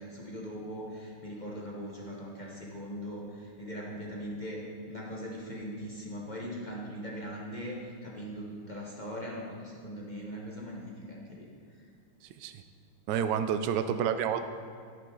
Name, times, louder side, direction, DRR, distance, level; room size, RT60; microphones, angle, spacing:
voice 1, 0.0-4.6 4.9-11.5, equal, 30° left, -4 dB, 0.9 m, -40 dB
voice 2, 13.1-14.4, right 8 dB, 75° right, 9 dB, 1.0 m, -28 dB
10.5 x 9.7 x 3.9 m, 2.3 s
omnidirectional pair, 2.4 m